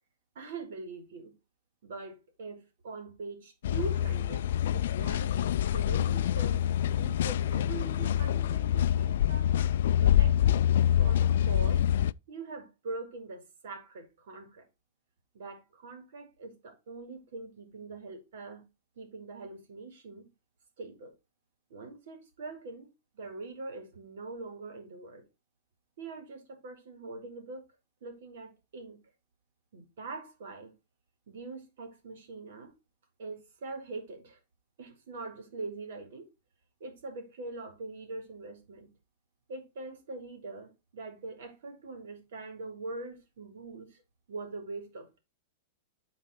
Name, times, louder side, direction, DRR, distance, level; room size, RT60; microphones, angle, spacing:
voice 1, 0.3-1.3 1.8-4.4 4.7-9.5 10.0-10.6 11.0-11.8 12.3-14.7 15.3-18.6 19.0-20.3 20.8-21.1 21.7-22.9 23.1-25.2 26.0-27.6 28.0-29.0 29.7-30.7 31.3-32.7 33.2-34.4 34.8-36.3 36.8-38.9 39.5-44.0 44.3-45.2, right 3 dB, 65° right, 3.2 m, -43 dB
sound 1, 3.6-12.1, left 10 dB, 65° left, 0.3 m, -26 dB
9.5 x 4.2 x 4.5 m
supercardioid pair, 170°, 0 cm